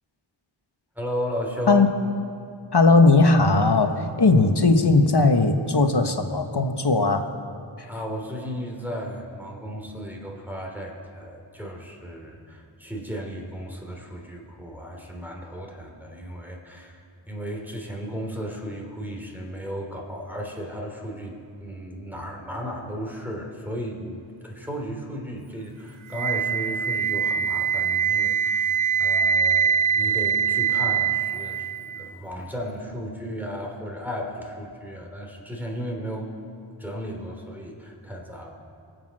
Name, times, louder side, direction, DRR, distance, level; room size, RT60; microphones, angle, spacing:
voice 1, 0.9-1.9 7.9-36.3 36.8-38.5, equal, 5° right, 0 dB, 3.0 m, -35 dB
voice 2, 2.7-7.3 7.8-7.9, left 3 dB, 55° left, 6 dB, 1.2 m, -18 dB
Wind instrument woodwind instrument, 26.1-32.1, right 7 dB, 80° right, 0.6 m, -23 dB
24.5 x 8.2 x 6.3 m, 2.4 s
wide cardioid pair, 40°, 48 cm